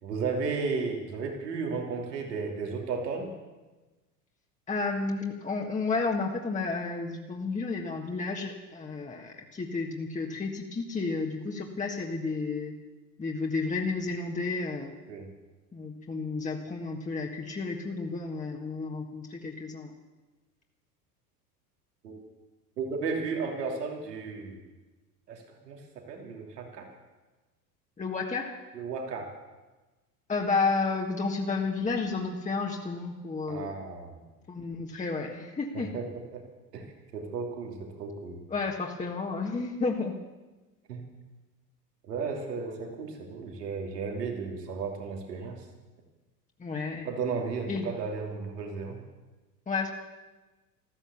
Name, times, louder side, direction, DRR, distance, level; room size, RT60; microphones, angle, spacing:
voice 1, 0.0-3.3 15.1-15.3 22.0-22.2 22.8-24.6 25.3-25.8 26.1-26.9 28.7-29.3 33.5-34.2 35.7-36.0 36.3-36.4 36.7-36.8 37.1-38.4 40.9-41.0 42.1-45.6 47.0-49.0, right 4 dB, 80° right, 1 dB, 3.1 m, -34 dB
voice 2, 4.7-12.7 13.2-15.0 15.7-19.9 28.0-28.5 30.3-33.8 34.5-35.9 38.5-40.1 46.6-47.1 47.7-47.9 49.7-49.9, left 4 dB, 15° left, 1 dB, 1.6 m, -31 dB
14.0 x 13.5 x 7.1 m, 1.2 s
hypercardioid pair, 85°, 48 cm